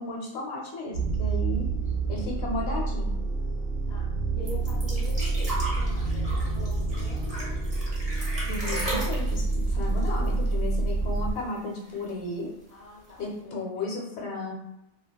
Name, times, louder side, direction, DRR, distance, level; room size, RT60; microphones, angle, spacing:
voice 1, 0.0-1.7 2.1-3.1 8.4-12.5 13.2-14.5, left 2 dB, 75° left, -1 dB, 0.9 m, -34 dB
sound 1, 0.9-11.3, right 3 dB, 80° right, 0.9 m, -28 dB
voice 2, 3.9-7.7 12.7-13.9, left 3 dB, 45° left, -3 dB, 0.6 m, -44 dB
sound 2, 4.5-10.9 11.2-11.3 11.6-12.3 13.1-13.2, right 1 dB, 35° right, 1.0 m, -36 dB
2.4 x 2.2 x 2.2 m, 0.87 s
omnidirectional pair, 1.1 m